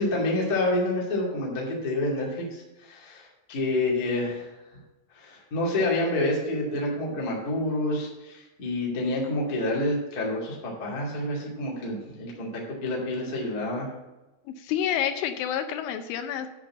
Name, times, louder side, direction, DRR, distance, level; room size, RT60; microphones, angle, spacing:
voice 1, 0.0-4.4 5.1-13.9, left 2 dB, 35° left, -4 dB, 1.5 m, -28 dB
voice 2, 14.5-16.5, left 9 dB, 85° left, 8 dB, 2.8 m, -28 dB
10.5 x 4.3 x 7.3 m, 1.0 s
omnidirectional pair, 5.9 m